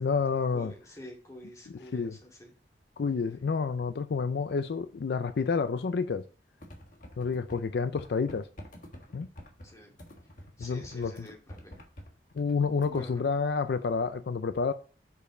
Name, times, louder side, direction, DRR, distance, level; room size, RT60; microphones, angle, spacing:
voice 1, 0.0-0.7 1.9-2.2 3.0-6.2 7.2-8.5 9.1-9.3 10.6-11.3 12.3-14.7, left 5 dB, 70° left, 0.4 m, -29 dB
voice 2, 0.5-2.5 9.6-10.0 10.6-11.8 12.9-13.2, left 1 dB, 20° left, 2.2 m, -48 dB
sound 1, 6.6-7.7 8.0-13.2, equal, 50° left, 1.5 m, -48 dB
6.8 x 5.2 x 4.9 m
head